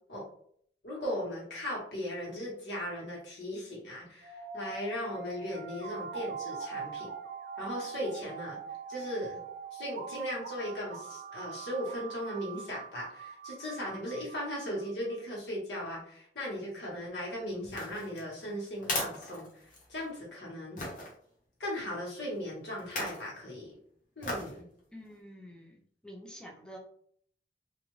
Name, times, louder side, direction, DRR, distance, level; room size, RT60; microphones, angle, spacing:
voice 1, 0.8-7.1 7.6-8.6 8.9-9.4 9.7-19.5 19.9-20.8 21.6-23.7 24.2-24.6, equal, 70° left, -4 dB, 1.3 m, -37 dB
sound 1, 4.2-15.2, right 6 dB, 60° right, 0.3 m, -42 dB
sound 2, 17.6-20.1 20.8-21.1 22.8-23.3 24.2-24.6 25.1-25.2, left 1 dB, 45° left, 0.8 m, -37 dB
voice 2, 24.9-26.8, equal, 5° left, 0 dB, 0.4 m, -48 dB
2.5 x 2.4 x 3.1 m, 0.64 s
head